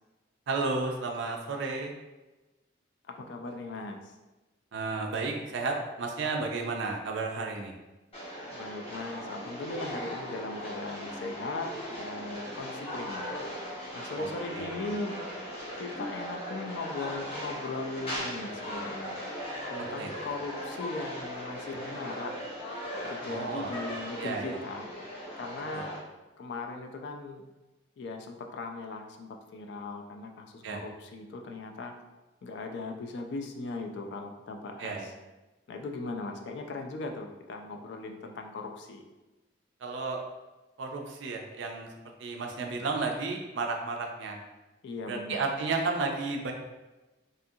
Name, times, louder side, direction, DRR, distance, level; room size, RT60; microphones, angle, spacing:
voice 1, 0.5-1.9 4.7-7.7 14.2-14.3 14.5-14.8 20.0-20.1 23.3-23.7 24.2-24.6 25.7-25.9 30.6-30.8 34.8-35.1 39.8-40.2 40.8-41.9 42.2-44.4 45.1-46.5, right 3 dB, 70° right, 2 dB, 0.4 m, -32 dB
voice 2, 3.1-4.2 8.5-13.5 13.9-15.2 15.8-19.2 19.7-22.4 23.0-24.9 25.4-26.0 26.4-27.4 28.0-31.9 32.4-35.1 35.7-39.1 44.8-45.4, left 3 dB, 60° left, 4 dB, 0.3 m, -38 dB
sound 1, 8.1-26.0, equal, 30° left, 0.7 m, -38 dB
2.7 x 2.4 x 2.6 m, 1.1 s
head